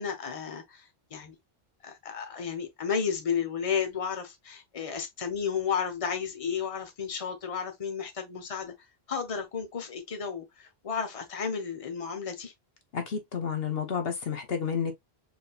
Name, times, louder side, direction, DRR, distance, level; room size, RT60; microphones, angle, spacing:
voice 1, 0.0-1.3 1.8-8.7 9.1-12.5, left 6 dB, 35° left, 1.0 m, -33 dB
voice 2, 12.9-14.9, left 7 dB, 70° left, 1.1 m, -30 dB
4.4 x 3.6 x 2.3 m
omnidirectional pair, 1.1 m